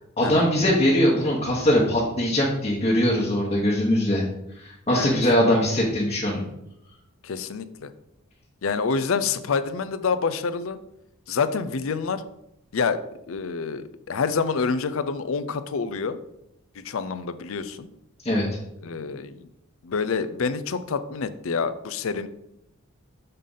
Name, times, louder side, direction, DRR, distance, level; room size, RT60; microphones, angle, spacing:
voice 1, 0.2-4.2 4.6-6.4 18.2-18.5, left 1 dB, 30° left, -5 dB, 1.2 m, -21 dB
voice 2, 7.2-7.9 8.6-10.8 11.3-12.2 12.7-13.0 13.3-16.2 16.8-17.9 18.8-19.5 19.8-22.3, left 5 dB, 65° left, 12 dB, 0.5 m, -27 dB
6.7 x 3.7 x 5.6 m, 0.81 s
head